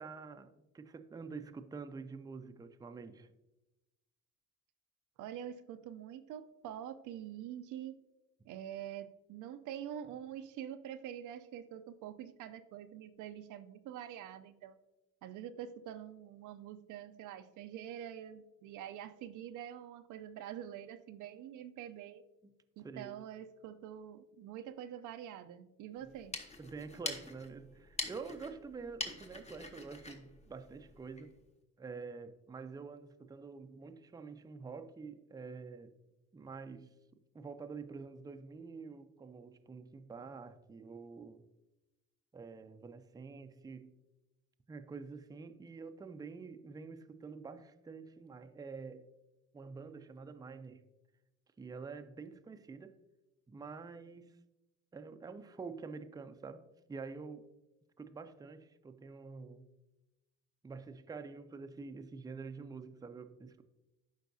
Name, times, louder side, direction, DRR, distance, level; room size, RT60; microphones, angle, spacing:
voice 1, 0.0-3.3 22.4-22.5 22.8-23.2 26.0-26.1 26.6-31.4 31.8-35.9 36.3-36.9 37.3-41.4 42.3-44.0 44.7-49.1 49.5-50.9 51.6-52.9 53.5-54.4 54.9-57.5 58.0-59.7 60.6-63.6, right 4 dB, 15° right, 0.4 m, -47 dB
voice 2, 5.2-8.0 8.5-14.8 15.2-22.2 22.8-26.4, right 10 dB, 85° right, 0.5 m, -46 dB
sound 1, 26.0-31.3, left 2 dB, 20° left, 1.0 m, -45 dB
11.0 x 4.6 x 2.6 m
cardioid pair, 90°, 30 cm